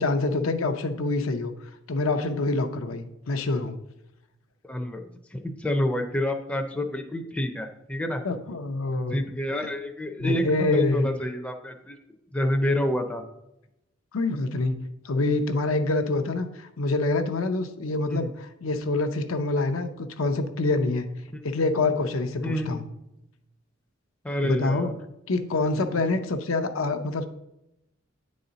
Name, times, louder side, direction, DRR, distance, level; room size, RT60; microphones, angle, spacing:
voice 1, 0.0-1.5 1.9-3.8 8.2-9.2 10.2-11.1 14.1-14.8 15.0-21.1 21.4-22.8 24.4-24.9 25.3-27.3, left 2 dB, 80° left, 8 dB, 0.6 m, -26 dB
voice 2, 4.6-5.0 5.3-8.2 9.0-12.0 12.3-13.2 18.1-18.3 21.3-21.4 22.4-22.8 24.2-24.9 25.7-25.8, left 1 dB, 5° left, 4 dB, 0.4 m, -28 dB
9.3 x 4.1 x 3.9 m, 0.88 s
head